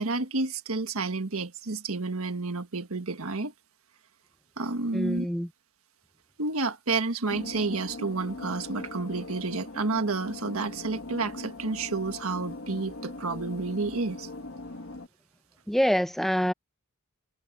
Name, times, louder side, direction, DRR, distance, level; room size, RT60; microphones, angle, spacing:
voice 1, 0.0-3.5 4.6-5.3 6.4-14.3, right 3 dB, 70° right, 1.6 m, -30 dB
voice 2, 4.9-5.5 15.7-16.5, equal, ahead, 0.7 m, -25 dB
sound 1, 7.3-15.1, left 2 dB, 60° left, 1.6 m, -40 dB
head